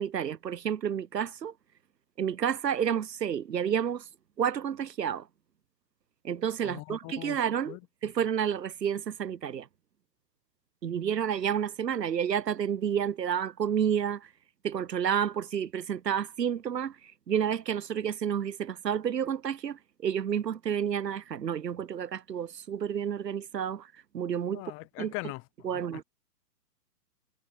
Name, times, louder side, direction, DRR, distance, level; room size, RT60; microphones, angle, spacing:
voice 1, 0.0-1.5 2.2-4.0 4.4-5.2 6.2-7.8 8.0-9.7 10.8-14.3 14.6-16.9 17.3-23.9 24.1-24.6 25.0-25.1 25.6-26.0, right 8 dB, 90° right, 1.5 m, -30 dB
voice 2, 6.6-7.4 7.7-7.8 24.5-25.8, left 28 dB, 25° left, 1.8 m, -40 dB
hypercardioid pair, 140°, 48 cm